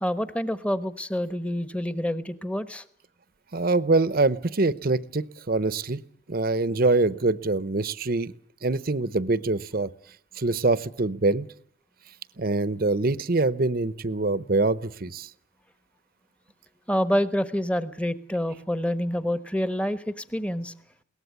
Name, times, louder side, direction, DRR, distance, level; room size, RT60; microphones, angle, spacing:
voice 1, 0.0-2.8 16.9-20.7, equal, 5° left, 12 dB, 1.1 m, -27 dB
voice 2, 3.5-6.0 6.3-8.3 8.6-9.9 10.4-11.5 12.4-15.3, right 3 dB, 45° right, 17 dB, 0.8 m, -24 dB
22.0 x 18.5 x 8.3 m, 0.66 s
head